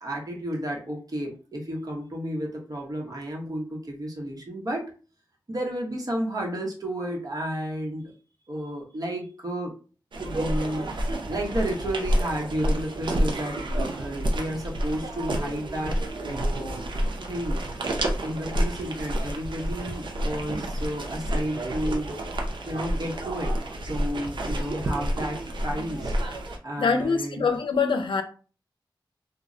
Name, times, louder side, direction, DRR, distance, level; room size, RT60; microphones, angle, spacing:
voice 1, 0.0-4.9 5.5-8.1 8.5-9.8 10.2-13.6 14.0-16.9 17.2-17.6 18.0-22.1 22.7-23.6 23.9-26.1 26.6-27.5, right 1 dB, 50° right, 0.9 m, -32 dB
sound 1, 10.1-26.6, right 1 dB, 75° right, 0.5 m, -29 dB
voice 2, 26.8-28.2, left 5 dB, 85° left, 0.5 m, -24 dB
2.2 x 2.0 x 3.7 m
wide cardioid pair, 60°, 8 cm